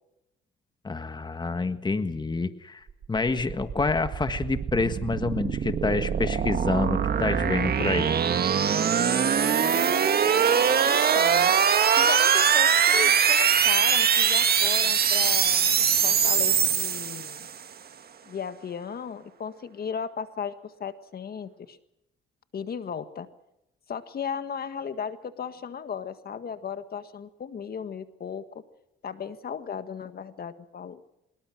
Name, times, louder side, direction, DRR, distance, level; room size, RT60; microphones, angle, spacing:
voice 1, 0.8-8.1, left 3 dB, 20° left, 10 dB, 1.6 m, -28 dB
sound 1, 3.0-17.6, right 7 dB, 50° right, 1.9 m, -22 dB
voice 2, 10.9-11.6 12.0-17.5 18.3-21.8 22.5-23.3 23.9-28.4 29.0-31.0, left 7 dB, 50° left, 10 dB, 1.7 m, -36 dB
25.0 x 22.0 x 6.2 m, 0.86 s
cardioid pair, 90°, 20 cm